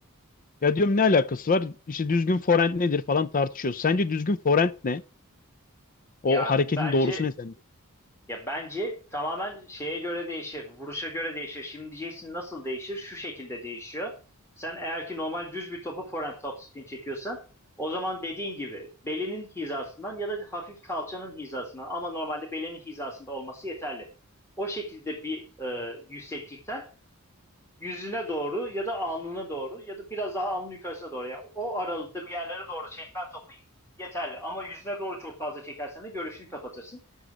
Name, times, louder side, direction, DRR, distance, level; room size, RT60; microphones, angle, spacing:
voice 1, 0.6-5.0 6.2-7.5, left 4 dB, 40° left, 0.5 m, -24 dB
voice 2, 6.3-7.2 8.3-14.2 14.6-17.4 17.8-24.1 24.6-26.9 27.8-33.6 34.0-37.0, equal, 10° left, 2.0 m, -34 dB
8.0 x 6.4 x 6.8 m
head